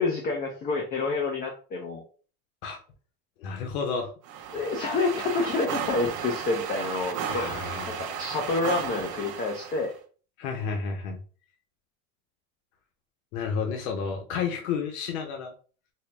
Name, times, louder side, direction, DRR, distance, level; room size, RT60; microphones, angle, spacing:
voice 1, 0.0-2.0 4.5-7.4 7.9-9.9, left 3 dB, 25° left, 1 dB, 0.5 m, -28 dB
voice 2, 3.4-4.1 7.3-8.1 10.4-11.2 13.3-15.5, left 6 dB, 90° left, 3 dB, 0.8 m, -31 dB
sound 1, 4.2-9.9, right 8 dB, 35° right, 0.6 m, -34 dB
4.3 x 2.0 x 3.3 m, 0.39 s
supercardioid pair, 145°, 41 cm